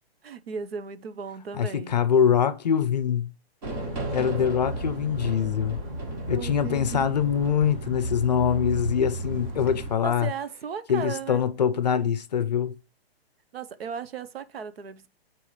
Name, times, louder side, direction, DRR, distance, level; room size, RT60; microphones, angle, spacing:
voice 1, 0.2-2.0 5.2-5.3 6.3-7.1 10.0-11.4 13.5-15.1, right 6 dB, 70° right, 0.8 m, -36 dB
voice 2, 1.5-3.3 4.1-5.8 6.3-10.3 10.9-12.8, left 8 dB, 40° left, 0.5 m, -24 dB
sound 1, 3.6-9.9, right 1 dB, 35° right, 1.4 m, -33 dB
8.7 x 4.5 x 3.2 m
hypercardioid pair, 175°, 31 cm